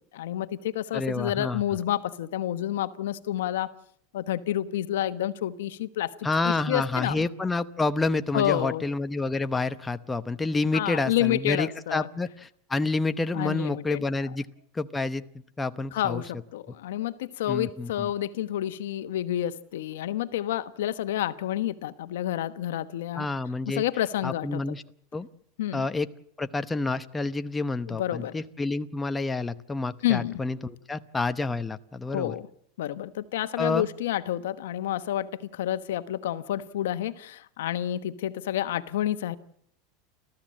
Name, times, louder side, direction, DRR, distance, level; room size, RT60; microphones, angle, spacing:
voice 1, 0.1-3.7 4.1-7.3 8.3-8.8 10.7-12.1 13.3-14.0 15.9-23.3 23.7-24.6 25.6-25.9 27.9-28.3 30.0-30.4 32.1-32.5 32.8-39.4, left 12 dB, 85° left, 12 dB, 1.1 m, -29 dB
voice 2, 0.9-1.6 6.2-14.5 14.7-15.2 15.6-16.2 17.5-18.1 23.1-23.8 24.2-24.8 25.1-25.3 25.7-26.1 26.4-32.4 33.6-33.8, left 3 dB, 10° left, 10 dB, 0.9 m, -29 dB
29.5 x 14.0 x 7.7 m, 0.69 s
supercardioid pair, 125°, 0 cm